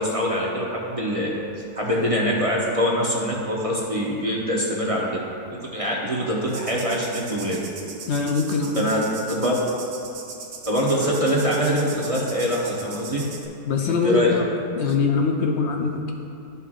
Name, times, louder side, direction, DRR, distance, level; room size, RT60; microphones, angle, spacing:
voice 1, 0.0-1.3 1.8-5.1 5.6-7.6 8.7-9.6 10.7-13.3 13.8-14.3, equal, 30° right, -4 dB, 0.7 m, -24 dB
sound 1, 6.5-13.5, right 4 dB, 80° right, 1.4 m, -39 dB
voice 2, 8.1-8.8 13.7-14.5 14.8-16.1, left 4 dB, 70° left, 2 dB, 0.6 m, -23 dB
12.5 x 5.5 x 2.5 m, 2.7 s
omnidirectional pair, 1.7 m